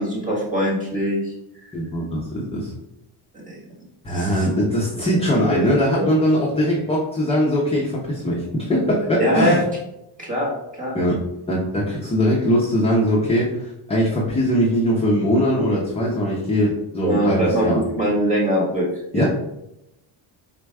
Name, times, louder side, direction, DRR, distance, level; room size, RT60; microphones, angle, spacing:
voice 1, 0.0-1.3 3.5-3.6 4.1-4.5 5.5-5.6 6.0-6.1 9.2-9.6 10.2-11.0 17.0-18.9 19.1-19.2, equal, 15° right, -6 dB, 1.6 m, -22 dB
voice 2, 1.7-2.7 4.0-9.6 10.9-11.2 11.5-17.8 19.1-19.2, equal, 15° left, -4 dB, 0.3 m, -21 dB
4.1 x 2.2 x 4.6 m, 0.84 s
cardioid pair, 180°, 49 cm